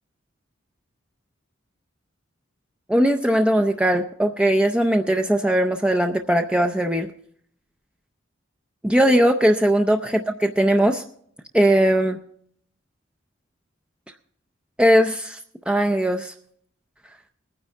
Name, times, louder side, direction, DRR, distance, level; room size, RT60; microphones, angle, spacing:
voice 1, 2.9-7.1 8.8-11.0 11.5-12.2 14.8-15.4 15.7-16.3, right 1 dB, 5° right, 5 dB, 0.5 m, -19 dB
21.5 x 9.8 x 3.5 m, 0.64 s
head